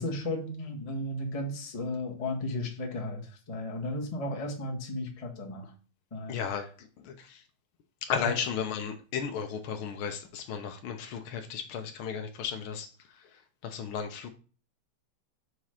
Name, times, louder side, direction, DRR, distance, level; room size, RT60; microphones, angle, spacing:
voice 1, 0.0-3.2 3.5-5.7 6.1-6.4 8.2-8.3, left 1 dB, 30° left, 0 dB, 0.7 m, -34 dB
voice 2, 6.3-7.4 8.0-12.9 13.6-14.3, left 7 dB, 80° left, 5 dB, 1.1 m, -34 dB
6.1 x 4.8 x 5.7 m, 0.39 s
omnidirectional pair, 3.3 m